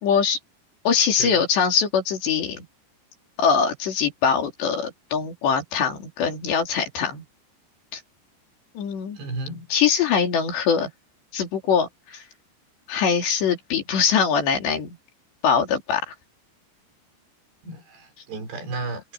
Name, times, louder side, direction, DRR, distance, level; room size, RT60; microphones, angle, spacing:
voice 1, 0.0-0.4 0.9-2.7 3.4-7.2 7.9-8.0 8.8-9.2 9.7-10.9 11.3-12.2 12.9-15.0 15.4-16.1, left 6 dB, 75° left, 5.7 m, -22 dB
voice 2, 9.2-9.7 17.6-19.1, right 3 dB, 70° right, 6.6 m, -33 dB
omnidirectional pair, 5.0 m